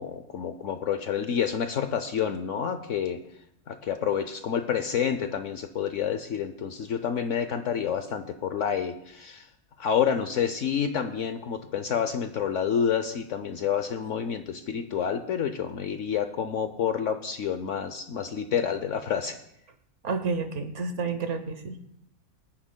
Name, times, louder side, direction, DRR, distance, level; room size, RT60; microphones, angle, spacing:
voice 1, 0.0-3.2 3.7-9.4 9.8-19.4, left 8 dB, 60° left, 8 dB, 0.8 m, -28 dB
voice 2, 20.0-21.9, right 4 dB, 55° right, 8 dB, 1.0 m, -30 dB
23.5 x 9.8 x 2.2 m, 0.77 s
omnidirectional pair, 1.7 m